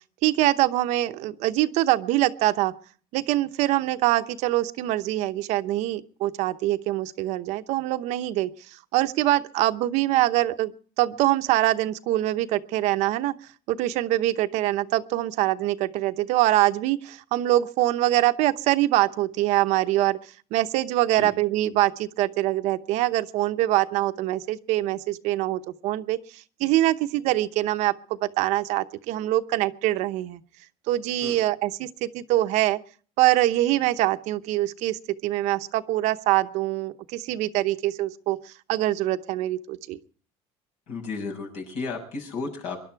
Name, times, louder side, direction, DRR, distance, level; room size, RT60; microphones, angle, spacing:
voice 1, 0.2-2.7 3.1-8.5 8.9-10.7 11.0-13.3 13.7-20.2 20.5-30.4 30.9-32.8 33.2-40.0, right 15 dB, 65° right, 10 dB, 0.9 m, -24 dB
voice 2, 40.9-42.8, left 4 dB, 65° left, 2 dB, 6.9 m, -33 dB
24.0 x 11.5 x 4.6 m, 0.44 s
cardioid pair, 150°, 13 cm